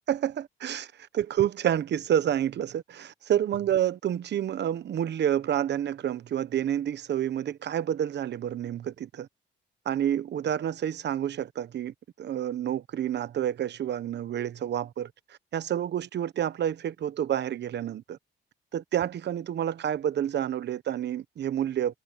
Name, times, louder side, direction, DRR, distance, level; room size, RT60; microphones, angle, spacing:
voice 1, 0.1-9.3 9.8-15.1 15.5-18.2 18.7-21.9, right 10 dB, 60° right, 1.1 m, -29 dB
cardioid pair, 90°, 20 cm